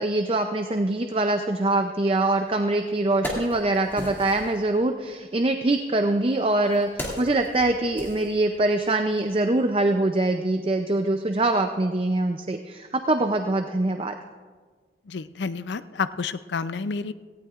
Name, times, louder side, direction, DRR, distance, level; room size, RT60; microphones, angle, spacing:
voice 1, 0.0-14.1, right 2 dB, 30° right, 6 dB, 0.5 m, -24 dB
Wood, 2.4-2.5 2.9-4.6 5.5-8.9 9.2-9.3, equal, 15° left, 2.3 m, -37 dB
voice 2, 15.1-17.1, left 5 dB, 85° left, 13 dB, 0.5 m, -30 dB
18.0 x 16.0 x 2.5 m, 1.5 s
head